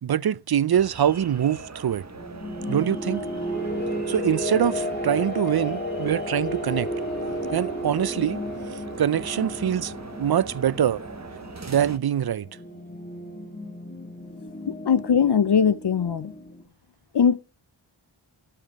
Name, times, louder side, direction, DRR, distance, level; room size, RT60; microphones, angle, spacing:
voice 1, 0.0-2.0 2.7-3.3 4.1-6.9 7.5-8.4 8.7-11.0 11.7-12.5, right 9 dB, 50° right, 0.5 m, -24 dB
sound 1, 0.7-12.0, right 3 dB, 35° right, 1.1 m, -41 dB
sound 2, 2.0-16.6, equal, 20° left, 2.3 m, -33 dB
voice 2, 14.7-16.3 17.1-17.4, left 7 dB, 55° left, 0.6 m, -20 dB
12.0 x 7.6 x 4.6 m
wide cardioid pair, 70°, 49 cm